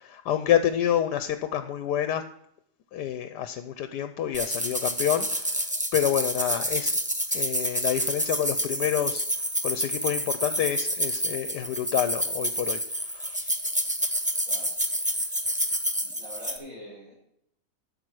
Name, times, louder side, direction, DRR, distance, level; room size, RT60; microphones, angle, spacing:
voice 1, 0.0-2.2 2.9-5.6 5.9-7.0 7.3-9.2 9.6-12.8 13.1-13.5, left 10 dB, 75° left, 10 dB, 1.2 m, -28 dB
sound 1, 4.3-16.6, equal, 10° right, 0.4 m, -28 dB
voice 2, 16.0-17.1, left 1 dB, 50° right, -10 dB, 5.8 m, -44 dB
13.0 x 7.4 x 4.8 m, 0.73 s
omnidirectional pair, 1.9 m